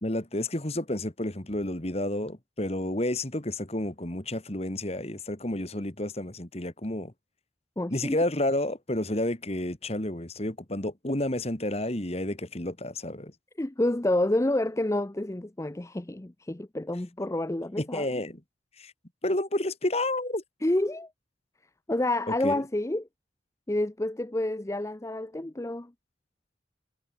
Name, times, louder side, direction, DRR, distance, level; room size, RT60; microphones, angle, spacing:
voice 1, 0.0-7.1 7.9-13.3 17.8-18.4 18.8-18.9 19.2-20.4 22.4-22.6, left 1 dB, 30° left, 2.0 m, -30 dB
voice 2, 7.8-8.2 13.6-18.2 20.6-21.1 21.9-23.1 23.7-25.9, left 1 dB, 15° left, 0.5 m, -28 dB
head